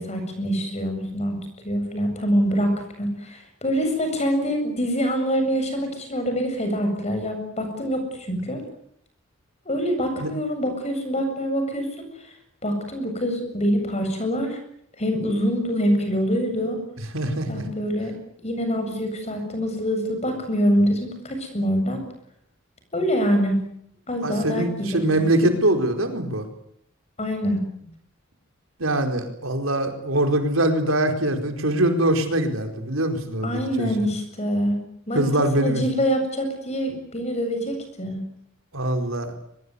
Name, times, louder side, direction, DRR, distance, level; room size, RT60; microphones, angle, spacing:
voice 1, 0.0-1.4 1.6-8.6 9.6-12.1 12.6-14.6 15.0-16.8 17.5-18.1 18.4-22.0 22.9-23.6 24.1-25.0 27.2-27.6 33.4-34.8 35.1-35.3 35.6-38.2, equal, 35° left, 6 dB, 7.7 m, -25 dB
voice 2, 17.1-17.7 24.2-26.4 28.8-33.9 35.1-35.8 38.7-39.3, right 1 dB, 85° right, 5 dB, 4.5 m, -23 dB
23.0 x 21.5 x 9.8 m, 0.72 s
head